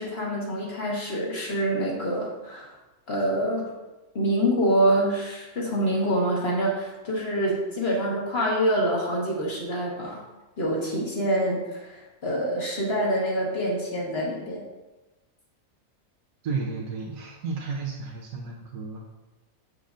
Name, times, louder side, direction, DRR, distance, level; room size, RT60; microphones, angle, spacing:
voice 1, 0.0-2.7 3.1-3.7 4.1-10.2 10.6-14.6, right 1 dB, 45° left, -3 dB, 1.5 m, -26 dB
voice 2, 16.4-19.0, right 4 dB, 75° right, -2 dB, 1.2 m, -32 dB
6.8 x 6.3 x 2.5 m, 1.1 s
omnidirectional pair, 1.6 m